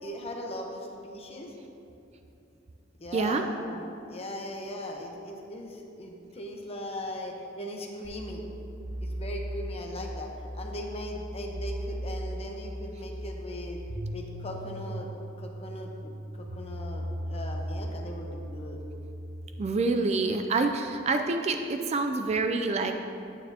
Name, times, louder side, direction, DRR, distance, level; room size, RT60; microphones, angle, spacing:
voice 1, 0.0-1.5 3.0-8.5 9.0-13.8 14.1-15.1 15.4-18.8, left 1 dB, 35° left, 1 dB, 0.9 m, -39 dB
voice 2, 3.1-3.4 19.6-22.9, right 3 dB, 35° right, 5 dB, 0.4 m, -27 dB
sound 1, 8.0-19.5, equal, 75° right, 0.8 m, -37 dB
9.5 x 9.0 x 2.8 m, 2.7 s
head